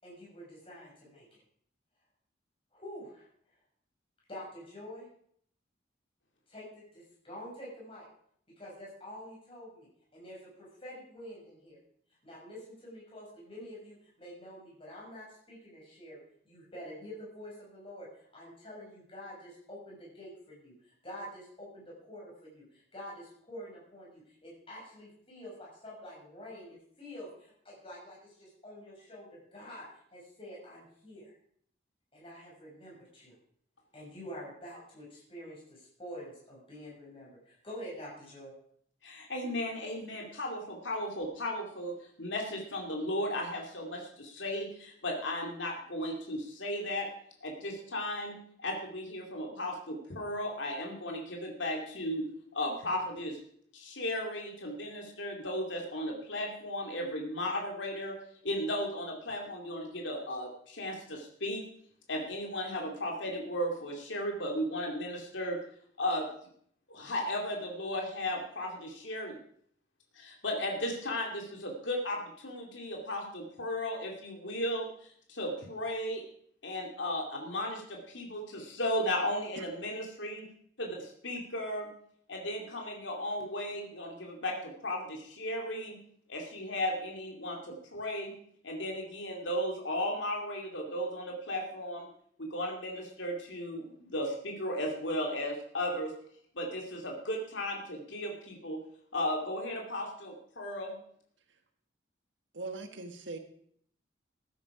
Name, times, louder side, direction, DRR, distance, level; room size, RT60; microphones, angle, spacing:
voice 1, 0.0-1.4 2.7-3.3 4.3-5.1 6.5-8.1 8.6-11.8 12.2-31.3 32.1-33.4 33.9-38.5, equal, 30° left, -5 dB, 6.4 m, -47 dB
voice 2, 39.0-47.1 47.4-52.2 52.5-53.4 53.7-58.2 58.4-61.6 62.1-65.6 66.0-66.3 66.9-69.4 70.2-76.2 76.6-80.5 80.8-81.9 82.3-86.0 86.3-88.3 88.6-92.1 92.4-96.1 96.5-98.8 99.1-100.9, left 1 dB, 80° left, 0 dB, 2.6 m, -35 dB
voice 3, 102.5-103.4, right 3 dB, 80° right, 6 dB, 1.5 m, -40 dB
14.5 x 12.0 x 4.9 m, 0.63 s
head